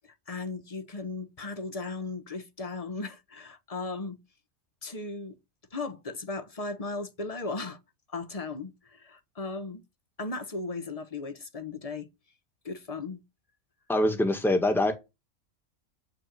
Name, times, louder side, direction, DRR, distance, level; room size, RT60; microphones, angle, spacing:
voice 1, 0.0-4.2 4.8-5.4 5.7-7.8 8.1-9.8 10.2-12.1 12.6-13.2, left 3 dB, 30° left, 1.1 m, -36 dB
voice 2, 13.9-14.9, left 1 dB, ahead, 1.6 m, -24 dB
12.0 x 4.4 x 7.6 m
omnidirectional pair, 1.4 m